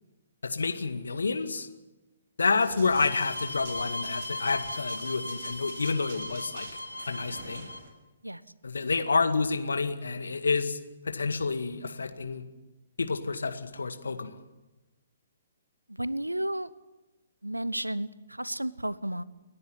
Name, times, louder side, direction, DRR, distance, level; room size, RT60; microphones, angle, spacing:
voice 1, 0.4-1.7 2.4-6.7 7.1-7.7 8.6-10.8 11.1-12.4 13.0-14.3, left 4 dB, 70° left, 8 dB, 2.0 m, -29 dB
Run, 2.6-7.9, right 4 dB, 45° right, 6.8 m, -48 dB
sound 1, 2.9-7.8, left 2 dB, 85° left, 2.5 m, -37 dB
voice 2, 15.9-16.7 17.4-19.2, right 1 dB, 90° right, 18 dB, 0.9 m, -32 dB
29.5 x 11.0 x 9.4 m, 1.1 s
figure-of-eight pair, 125°, 0 cm